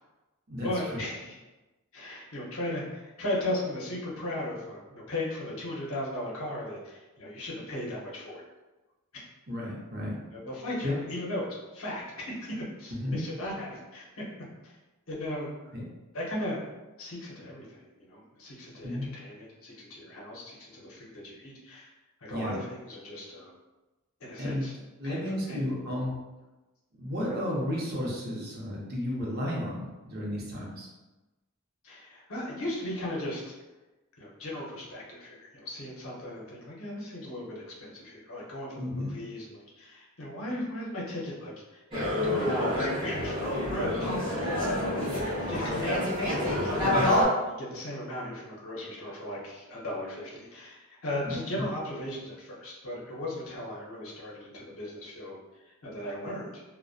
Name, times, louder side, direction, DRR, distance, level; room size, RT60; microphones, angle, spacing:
voice 1, 0.6-1.3 1.9-8.4 9.1-9.2 10.3-14.2 14.6-14.7 15.1-15.5 16.1-16.6 17.0-21.9 22.2-23.5 24.2-24.7 25.0-25.6 31.8-33.5 34.2-41.8 42.2-45.0 45.4-46.7 47.4-56.6, left 1 dB, 65° left, -4 dB, 0.7 m, -37 dB
voice 2, 9.5-10.2 10.8-11.0 12.9-13.2 15.7-15.8 18.8-19.1 22.3-22.5 24.4-24.7 25.0-26.1 27.0-30.9 38.8-39.1 44.0-44.1 46.8-47.1 51.2-51.6, left 1 dB, 45° right, -4 dB, 0.6 m, -33 dB
sound 1, 41.9-47.2, left 1 dB, 25° right, 0.9 m, -28 dB
2.5 x 2.1 x 2.3 m, 1.1 s
head